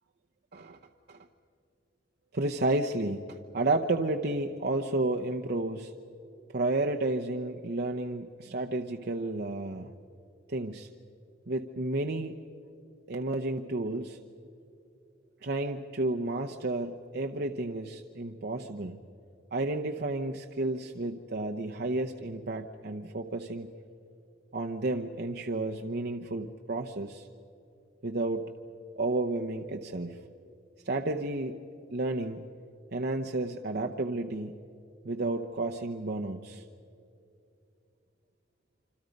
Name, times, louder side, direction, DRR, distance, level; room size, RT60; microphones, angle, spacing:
voice 1, 2.3-5.9 6.5-9.9 10.5-10.9 11.5-12.3 13.1-14.2 15.4-19.0 19.5-23.7 24.5-27.3 28.0-28.5 29.0-30.2 30.8-31.6 31.9-32.4 32.9-34.6 35.0-36.6, right 2 dB, 55° right, 3 dB, 0.8 m, -31 dB
26.5 x 26.0 x 5.3 m, 2.6 s
head